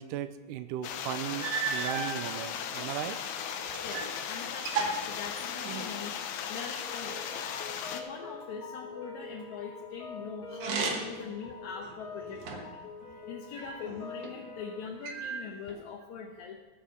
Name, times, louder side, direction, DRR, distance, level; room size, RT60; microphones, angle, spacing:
voice 1, 0.0-3.2, right 11 dB, 85° right, 11 dB, 2.0 m, -37 dB
sound 1, 0.8-8.0, left 8 dB, 90° left, 2.8 m, -37 dB
sound 2, 0.8-0.9 1.4-2.2 2.9-4.2 4.4-6.0 10.5-11.3 11.8-12.8 13.5-14.3 15.0-15.8, right 4 dB, 60° right, 1.8 m, -35 dB
voice 2, 3.8-6.2 6.5-7.6 7.9-16.6, left 6 dB, 70° left, 0 dB, 2.0 m, -43 dB
sound 3, 6.8-14.9, left 4 dB, 45° left, 2.2 m, -45 dB
15.5 x 6.4 x 6.4 m, 1.3 s
omnidirectional pair, 4.2 m